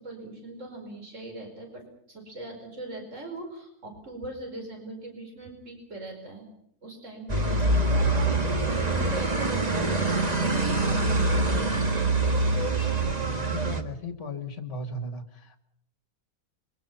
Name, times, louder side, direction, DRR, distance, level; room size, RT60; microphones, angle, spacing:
voice 1, 0.0-6.5 6.8-8.3 8.8-11.9, right 2 dB, 55° right, 3 dB, 5.5 m, -40 dB
sound 1, 7.3-13.8, right 2 dB, 25° right, 2.1 m, -25 dB
voice 2, 12.9-15.6, left 2 dB, 45° left, 8 dB, 2.1 m, -37 dB
26.0 x 24.0 x 5.7 m, 0.71 s
omnidirectional pair, 1.6 m